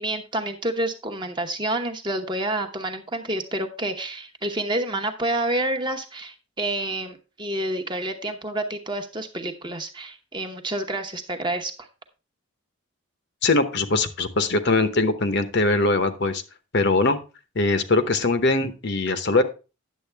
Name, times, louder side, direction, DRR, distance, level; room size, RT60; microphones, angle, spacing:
voice 1, 0.0-11.7, right 1 dB, 20° right, 5 dB, 0.9 m, -28 dB
voice 2, 13.4-16.4 16.7-17.2 17.6-19.4, left 2 dB, 50° left, 9 dB, 0.9 m, -21 dB
10.0 x 7.6 x 3.4 m, 0.31 s
head